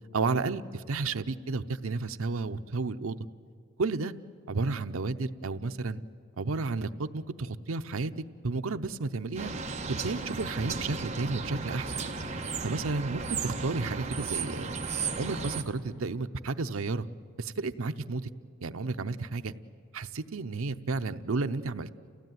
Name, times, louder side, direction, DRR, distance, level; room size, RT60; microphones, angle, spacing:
voice 1, 0.1-3.2 3.8-4.1 4.5-6.0 6.4-8.1 8.4-9.5 9.9-12.0 12.6-14.7 15.1-17.1 17.4-18.3 18.6-19.5 19.9-21.9, right 3 dB, 80° right, 9 dB, 0.7 m, -32 dB
sound 1, 9.4-15.6, right 4 dB, 30° right, 1.2 m, -34 dB
29.5 x 16.0 x 9.3 m, 2.4 s
head